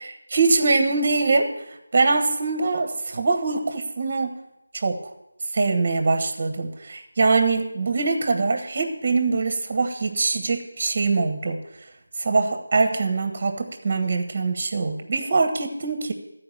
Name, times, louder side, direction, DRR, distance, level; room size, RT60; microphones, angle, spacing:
voice 1, 0.3-4.3 4.7-5.1 5.5-11.6 12.2-16.1, right 3 dB, 35° right, 7 dB, 1.2 m, -23 dB
14.0 x 4.8 x 7.5 m, 0.85 s
figure-of-eight pair, 165°, 0 cm